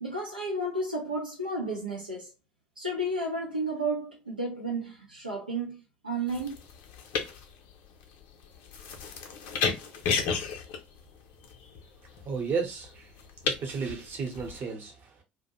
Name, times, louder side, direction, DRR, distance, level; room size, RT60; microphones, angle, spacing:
voice 1, 0.0-2.3 2.8-5.8 6.0-6.5, right 1 dB, 85° right, 0.5 m, -32 dB
sound 1, 6.3-14.6, left 5 dB, 55° left, 0.6 m, -34 dB
voice 2, 12.2-13.1 13.5-15.2, right 5 dB, 40° right, 0.9 m, -33 dB
2.3 x 2.0 x 2.9 m
figure-of-eight pair, 60°, 5 cm